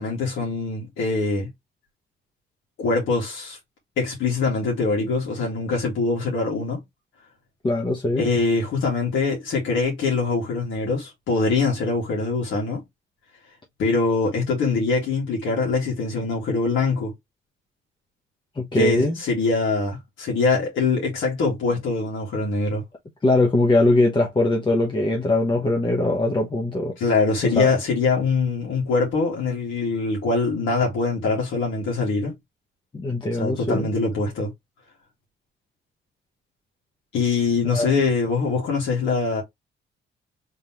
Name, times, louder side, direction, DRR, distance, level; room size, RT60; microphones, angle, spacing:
voice 1, 0.0-1.5 2.8-3.6 4.0-6.8 8.2-12.8 13.8-17.1 18.7-22.8 27.0-32.3 33.3-34.5 37.1-39.4, left 4 dB, 85° left, 1.9 m, -23 dB
voice 2, 7.6-8.2 18.6-19.2 23.2-26.9 27.4-27.7 32.9-33.9 37.7-37.9, left 2 dB, 25° left, 0.9 m, -21 dB
3.6 x 3.5 x 3.0 m
cardioid pair, 90°, 20 cm